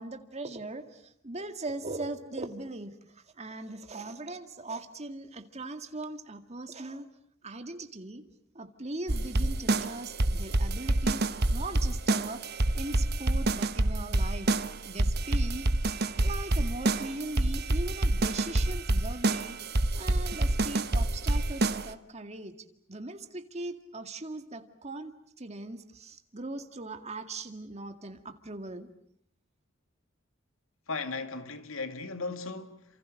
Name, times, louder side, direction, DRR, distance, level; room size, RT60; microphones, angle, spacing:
voice 1, 0.0-7.1 7.4-8.2 8.5-12.4 12.7-14.6 14.8-15.7 16.2-19.6 20.0-22.6 22.9-28.9, right 2 dB, 30° right, 2.0 m, -40 dB
sound 1, 9.1-21.9, right 2 dB, 50° right, 1.1 m, -27 dB
voice 2, 30.9-33.0, left 3 dB, 75° left, 2.1 m, -37 dB
29.5 x 27.0 x 6.5 m
head